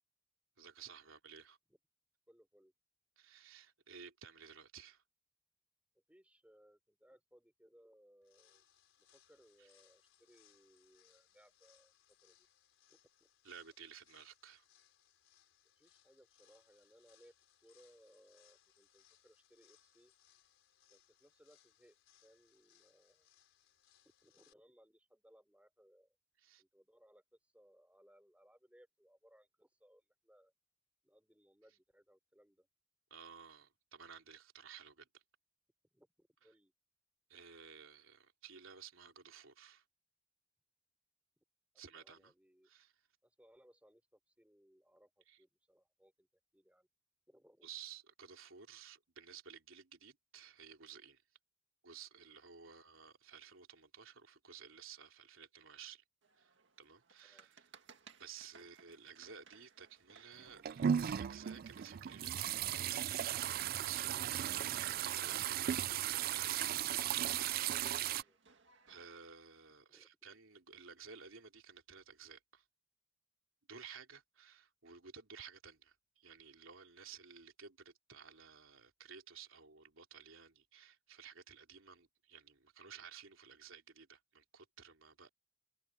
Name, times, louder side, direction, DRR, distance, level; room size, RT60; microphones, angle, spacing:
voice 1, 0.6-1.6 3.2-5.0 9.6-9.7 13.4-14.7 26.4-26.6 33.1-35.2 37.3-39.8 41.7-42.3 42.6-43.0 45.3-45.4 47.6-51.2 51.8-56.0 56.4-57.7 58.2-66.6 68.9-72.7 73.7-85.3, right 7 dB, 80° right, 3.2 m, -55 dB
voice 2, 2.3-2.7 6.1-8.6 9.1-11.9 12.2-12.5 12.9-13.3 15.8-17.3 17.6-20.1 20.9-22.0 22.2-23.3 24.2-26.2 26.6-30.5 31.0-32.7 35.9-36.7 41.4-41.5 41.7-42.7 43.2-46.3 46.5-46.9 47.3-47.7 57.2-57.5 67.5-67.8 68.1-68.6 69.9-70.1, equal, 5° right, 4.6 m, -67 dB
sound 1, 8.2-24.5, left 11 dB, 75° left, 4.8 m, -71 dB
sound 2, 56.2-69.3, right 5 dB, 60° right, 2.0 m, -65 dB
sound 3, 60.4-68.2, right 10 dB, 45° right, 0.3 m, -36 dB
head